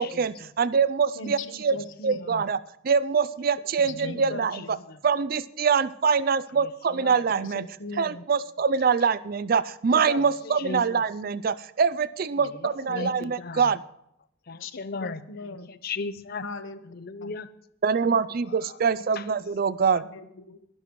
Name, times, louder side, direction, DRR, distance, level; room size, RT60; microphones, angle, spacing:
voice 1, 0.0-1.8 2.0-2.6 2.8-4.6 5.0-7.6 8.0-13.8 17.8-20.0, right 5 dB, 50° right, 17 dB, 0.4 m, -24 dB
voice 2, 1.1-2.4 4.0-4.8 7.4-8.2 9.9-10.6 12.8-13.2 14.6-14.7 15.0-15.7 16.4-16.8 17.2-17.3 19.9-20.6, left 3 dB, 85° left, 10 dB, 1.1 m, -39 dB
voice 3, 10.6-11.0 12.9-13.6 14.5-15.2 15.7-16.4 16.9-17.5, left 4 dB, 50° left, 14 dB, 0.7 m, -35 dB
21.5 x 12.0 x 3.1 m, 0.77 s
head